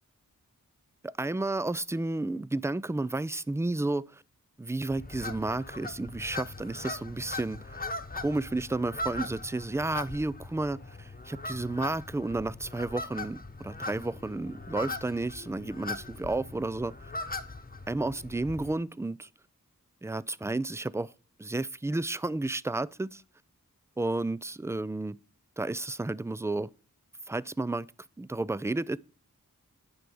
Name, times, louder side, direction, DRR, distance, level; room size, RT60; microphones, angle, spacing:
voice 1, 1.0-4.2 4.6-7.8 8.2-16.9 17.9-19.3 20.0-21.1 21.4-23.2 24.0-25.2 25.6-26.7 27.3-27.9 28.2-29.0, right 2 dB, 10° right, 0.3 m, -32 dB
sound 1, 4.9-18.7, left 2 dB, 25° left, 1.0 m, -40 dB
9.8 x 3.4 x 6.9 m
wide cardioid pair, 40°, 35 cm